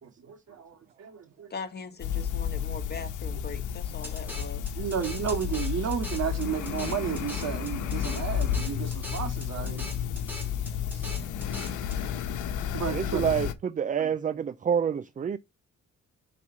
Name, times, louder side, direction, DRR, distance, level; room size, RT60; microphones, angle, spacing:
voice 1, 0.0-1.5 2.1-2.3 4.8-10.0 10.9-11.2 12.7-13.3 14.0-14.1, right 8 dB, 60° right, 2.2 m, -33 dB
voice 2, 1.5-4.7, left 4 dB, 35° left, 1.6 m, -40 dB
sound 1, 2.0-13.5, left 9 dB, 80° left, 1.0 m, -32 dB
sound 2, 4.0-12.0, equal, 5° right, 4.3 m, -42 dB
voice 3, 12.9-15.4, right 8 dB, 25° right, 0.4 m, -27 dB
6.1 x 4.2 x 5.5 m
cardioid pair, 90°, 30 cm